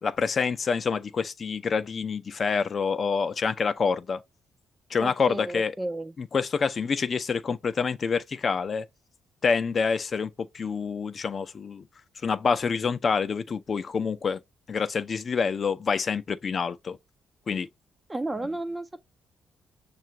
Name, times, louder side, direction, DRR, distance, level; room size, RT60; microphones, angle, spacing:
voice 1, 0.0-4.2 4.9-5.7 6.2-8.9 9.4-11.9 12.2-14.4 14.7-17.0 17.5-17.7, left 5 dB, 45° left, 0.5 m, -27 dB
voice 2, 5.0-6.1 18.1-19.0, right 2 dB, 15° right, 0.4 m, -33 dB
6.6 x 2.4 x 2.9 m
cardioid pair, 90°, 0 cm